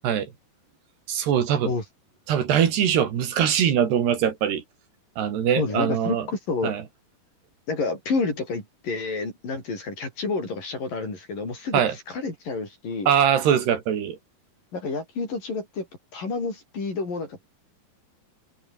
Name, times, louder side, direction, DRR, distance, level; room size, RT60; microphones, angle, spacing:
voice 1, 1.1-1.7 2.3-4.6 5.2-6.3 6.6-6.8 11.7-12.0 13.1-14.2, right 9 dB, 75° right, 4.7 m, -22 dB
voice 2, 5.6-6.7 7.7-11.8 12.1-13.1 14.7-15.9 16.1-17.5, left 3 dB, 50° left, 9.0 m, -29 dB
omnidirectional pair, 4.9 m